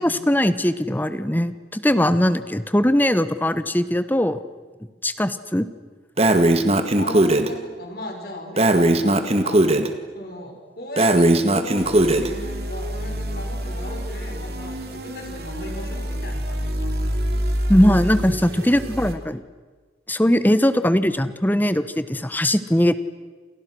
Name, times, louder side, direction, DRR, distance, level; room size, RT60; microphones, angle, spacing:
voice 1, 0.0-4.4 5.0-5.7 17.7-19.4 20.1-23.0, equal, 10° left, 13 dB, 1.1 m, -20 dB
Breathing, 6.2-7.5 8.6-9.9 11.0-12.3, right 1 dB, 35° right, 1.9 m, -18 dB
voice 2, 7.0-17.2, left 1 dB, 60° left, 2 dB, 5.7 m, -37 dB
sound 1, 11.8-19.1, equal, 60° right, 3.1 m, -28 dB
29.5 x 28.5 x 6.4 m, 1.4 s
head